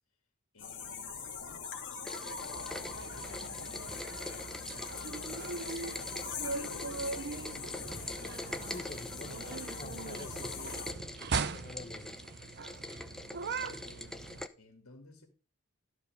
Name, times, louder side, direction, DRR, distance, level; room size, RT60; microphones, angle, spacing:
voice 1, 0.5-1.6 2.0-2.3 2.9-8.5 8.9-9.1 13.1-15.3, left 2 dB, 75° left, 2.4 m, -58 dB
sound 1, 0.6-10.9, left 5 dB, 60° left, 2.0 m, -42 dB
Rain, 2.1-14.5, left 1 dB, ahead, 0.7 m, -44 dB
sound 2, 2.5-14.5, right 4 dB, 55° right, 0.7 m, -41 dB
voice 2, 8.7-10.8 11.2-12.3, left 3 dB, 35° left, 0.9 m, -48 dB
13.0 x 4.8 x 6.5 m
head